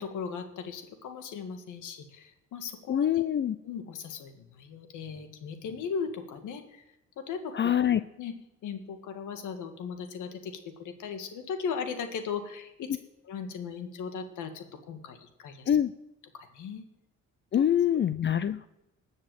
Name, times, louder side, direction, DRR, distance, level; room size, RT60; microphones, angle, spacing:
voice 1, 0.0-3.3 3.6-6.8 7.2-7.9 8.2-8.3 8.6-13.0 13.2-15.7 16.3-16.8 17.5-17.6, left 6 dB, 80° left, 7 dB, 1.8 m, -38 dB
voice 2, 2.9-3.6 7.5-8.0 15.7-15.9 17.5-18.7, left 10 dB, 40° left, 14 dB, 0.5 m, -25 dB
19.0 x 6.5 x 7.8 m, 0.90 s
cardioid pair, 90°, 30 cm